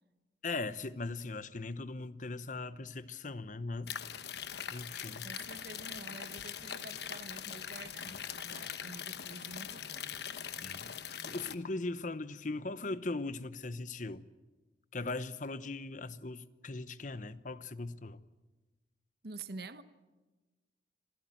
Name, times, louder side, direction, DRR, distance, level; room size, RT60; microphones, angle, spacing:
voice 1, 0.4-3.9 4.7-5.3 8.1-8.2 10.6-14.3 14.9-18.2, left 3 dB, 45° left, 0.9 m, -39 dB
sound 1, 3.9-11.5, left 8 dB, 65° left, 1.1 m, -42 dB
voice 2, 5.2-10.2 19.2-19.8, right 3 dB, 60° right, 1.1 m, -48 dB
26.5 x 16.5 x 9.0 m
head